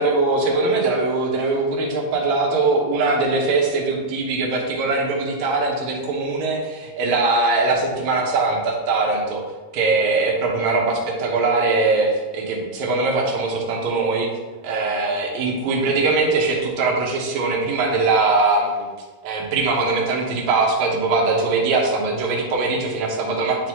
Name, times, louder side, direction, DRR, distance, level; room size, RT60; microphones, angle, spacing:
voice 1, 0.0-9.4 9.7-14.3 14.6-18.9 19.2-23.7, right 3 dB, 65° right, -1 dB, 2.0 m, -21 dB
10.5 x 4.1 x 3.0 m, 1.3 s
omnidirectional pair, 4.3 m